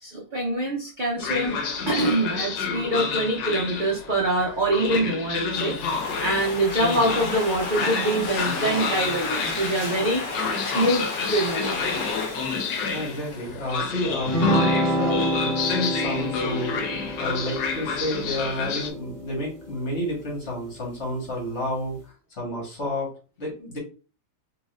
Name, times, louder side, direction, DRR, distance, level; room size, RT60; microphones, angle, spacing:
voice 1, 0.0-1.6 1.9-10.3 10.6-11.7, right 1 dB, 60° right, -2 dB, 0.5 m, -25 dB
Train, 1.2-18.9, left 5 dB, 85° left, 1.4 m, -30 dB
Domestic sounds home sounds, 5.6-14.0, left 3 dB, 60° left, 0.5 m, -32 dB
voice 2, 12.9-22.0 22.4-23.1 23.4-23.8, left 1 dB, 40° left, -2 dB, 1.6 m, -30 dB
sound 1, 14.3-19.9, equal, 25° left, 1.8 m, -27 dB
4.0 x 3.3 x 2.5 m, 0.35 s
omnidirectional pair, 1.9 m